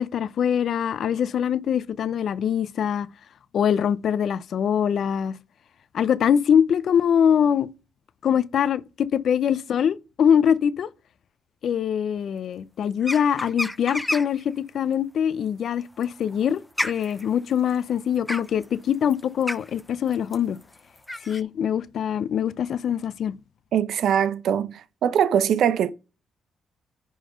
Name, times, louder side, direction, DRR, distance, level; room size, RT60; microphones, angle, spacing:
voice 1, 0.0-3.1 3.5-5.4 5.9-7.7 8.2-10.9 11.6-20.6 21.3-23.4, left 8 dB, 60° left, 0.6 m, -23 dB
sound 1, 13.0-14.4 15.8-21.4, left 1 dB, 5° left, 0.5 m, -31 dB
voice 2, 23.7-25.9, right 9 dB, 70° right, 0.8 m, -22 dB
10.0 x 4.0 x 5.1 m
cardioid pair, 90°, 0 cm